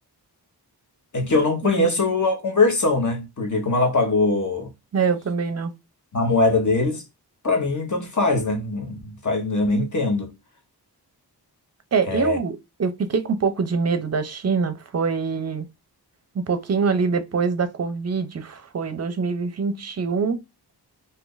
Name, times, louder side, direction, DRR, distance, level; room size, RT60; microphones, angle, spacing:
voice 1, 1.1-4.7 6.1-7.0 7.4-10.3 12.1-12.4, left 3 dB, 45° left, 1.0 m, -22 dB
voice 2, 4.9-5.7 11.9-15.7 16.3-20.4, right 5 dB, 40° right, 0.5 m, -24 dB
2.7 x 2.5 x 3.8 m
wide cardioid pair, 105°, 41 cm